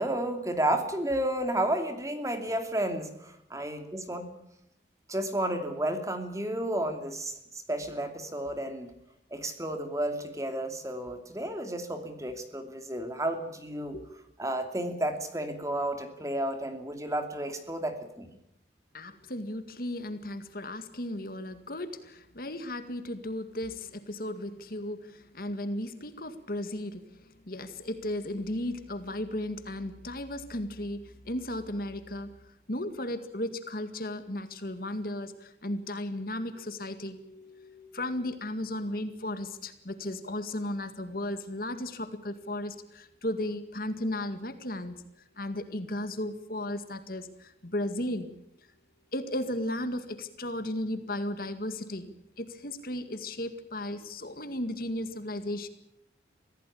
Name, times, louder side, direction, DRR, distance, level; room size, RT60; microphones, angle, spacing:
voice 1, 0.0-4.2 5.1-7.4 7.7-8.9 9.3-14.0 14.4-18.3, right 1 dB, 15° right, 7 dB, 2.7 m, -32 dB
voice 2, 18.9-32.3 32.7-45.0 45.4-48.3 49.1-52.1 52.4-55.7, left 1 dB, 50° left, 10 dB, 2.0 m, -35 dB
24.0 x 16.5 x 8.5 m, 0.80 s
head